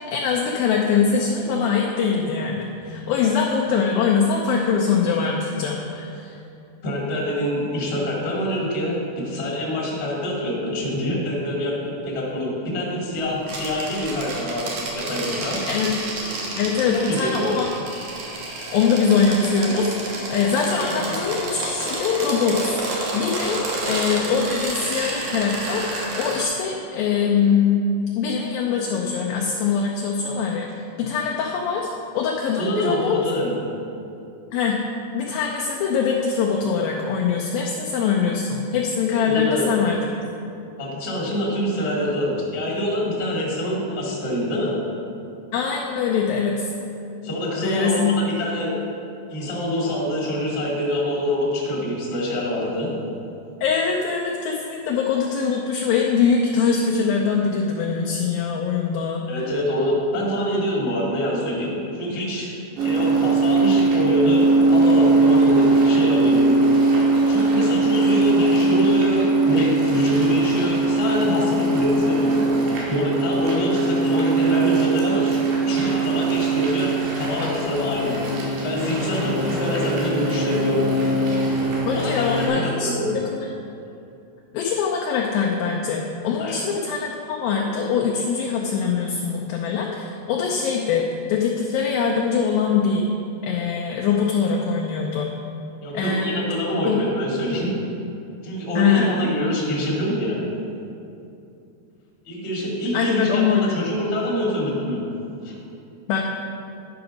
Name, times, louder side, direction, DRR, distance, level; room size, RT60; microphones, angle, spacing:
voice 1, 0.1-6.4 15.7-15.9 16.6-17.7 18.7-22.8 23.1-27.8 28.2-30.7 31.0-33.2 34.5-34.8 35.1-40.0 45.5-46.7 47.6-48.2 53.6-59.4 81.9-83.5 84.5-93.1 93.4-95.3 95.9-96.5 96.9-97.0 98.8-99.3 102.9-103.8 106.1-106.2, left 6 dB, 85° left, -2 dB, 2.1 m, -23 dB
voice 2, 6.8-14.7 14.9-15.6 16.9-17.5 20.7-21.2 32.6-33.5 39.2-39.7 40.8-44.8 47.2-48.7 49.3-52.9 59.3-62.5 62.8-66.6 67.3-72.4 72.9-75.4 75.6-78.2 78.6-80.8 81.9-83.2 86.4-86.5 95.8-97.7 98.4-100.4 102.2-105.0 105.4-105.5, equal, 25° left, -6 dB, 1.3 m, -25 dB
sound 1, 13.4-26.4, right 2 dB, 65° right, 2.0 m, -30 dB
sound 2, 62.8-82.5, right 2 dB, 85° right, 3.8 m, -20 dB
10.5 x 6.0 x 5.2 m, 2.7 s
omnidirectional pair, 5.0 m